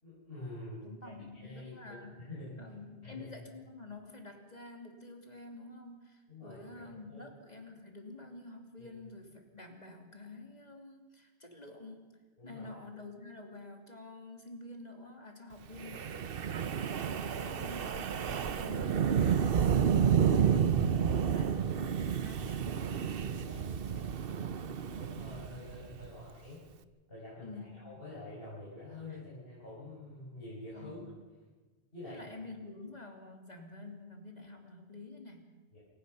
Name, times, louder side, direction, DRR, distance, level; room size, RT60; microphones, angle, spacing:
voice 1, 0.0-2.5 3.0-3.3 6.3-7.2 8.8-8.9 12.4-12.7 23.2-24.1 24.6-26.6 27.1-31.0 31.9-32.2 35.7-35.8, left 2 dB, 55° left, -9 dB, 6.9 m, -47 dB
voice 2, 0.8-2.2 2.6-16.3 17.1-23.1 27.4-27.9 29.1-29.2 30.7-31.2 32.1-35.5, left 2 dB, 40° left, 3 dB, 2.9 m, -49 dB
Wind, 15.8-26.1, right 8 dB, 60° right, 1.0 m, -30 dB
28.0 x 16.5 x 5.6 m, 1.3 s
omnidirectional pair, 1.1 m